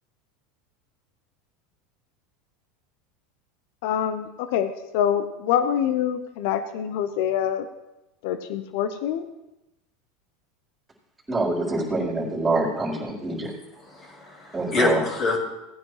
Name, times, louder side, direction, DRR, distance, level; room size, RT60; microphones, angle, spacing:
voice 1, 3.8-7.7 8.2-9.3, left 9 dB, 65° left, 11 dB, 0.7 m, -25 dB
voice 2, 11.3-13.5 14.5-15.0, right 2 dB, 15° right, -3 dB, 4.2 m, -25 dB
voice 3, 13.9-15.4, left 2 dB, 40° left, -5 dB, 5.0 m, -26 dB
17.0 x 9.6 x 3.3 m, 0.94 s
hypercardioid pair, 95°, 0 cm